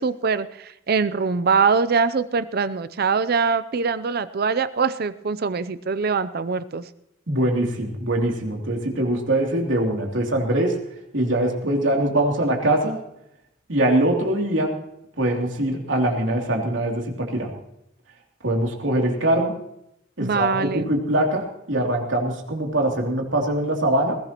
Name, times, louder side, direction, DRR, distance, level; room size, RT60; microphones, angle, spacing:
voice 1, 0.0-6.8 20.2-20.9, right 5 dB, 50° right, 14 dB, 0.6 m, -23 dB
voice 2, 7.3-10.8 11.1-13.0 13.7-14.8 15.2-17.5 18.4-19.5 20.2-24.2, right 1 dB, 75° right, 0 dB, 3.0 m, -22 dB
20.5 x 16.5 x 3.0 m, 0.81 s
head